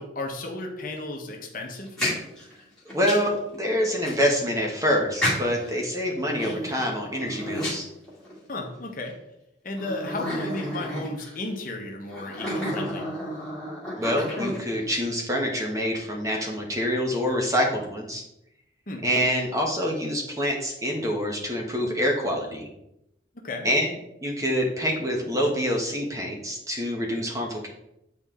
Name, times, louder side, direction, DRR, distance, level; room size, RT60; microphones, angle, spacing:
voice 1, 0.0-2.0 8.5-9.1 9.6-13.1 18.9-19.0 23.3-23.7, left 2 dB, 45° left, 1 dB, 1.2 m, -34 dB
sound 1, 1.7-3.4 4.1-4.2 5.2-5.8 6.3-8.4 9.1-9.2 9.8-11.4 12.1-14.9, equal, 5° left, 2.2 m, -31 dB
voice 2, 2.9-7.8 14.0-18.2 19.0-22.7 23.6-23.9 24.2-27.7, equal, 15° right, 0 dB, 1.1 m, -26 dB
8.8 x 4.3 x 3.7 m, 0.84 s
head